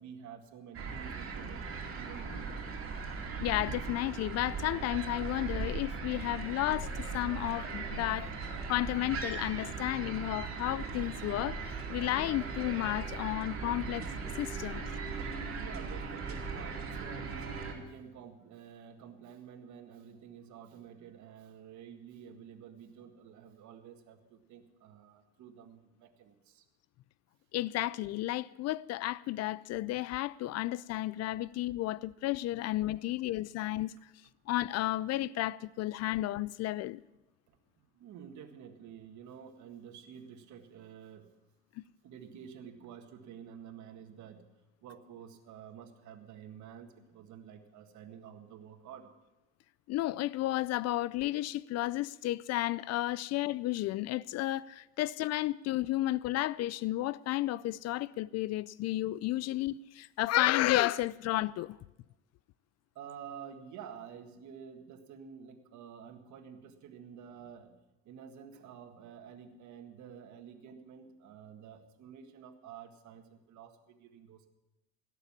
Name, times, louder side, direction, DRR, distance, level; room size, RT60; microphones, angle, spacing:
voice 1, 0.0-1.6 1.9-2.6 15.5-26.7 37.5-37.6 37.9-41.3 42.0-44.5 44.8-49.1 63.0-67.8 68.1-74.5, right 8 dB, 60° right, 1.8 m, -50 dB
sound 1, 0.7-17.7, right 5 dB, 45° right, 2.7 m, -39 dB
voice 2, 3.4-6.9 7.1-14.1 14.4-14.9 27.5-33.9 34.5-37.0 49.9-61.8, left 16 dB, 50° left, 0.4 m, -32 dB
sound 2, 5.3-17.6, right 2 dB, 15° right, 2.0 m, -48 dB
17.0 x 6.9 x 7.3 m
supercardioid pair, 80°, 33 cm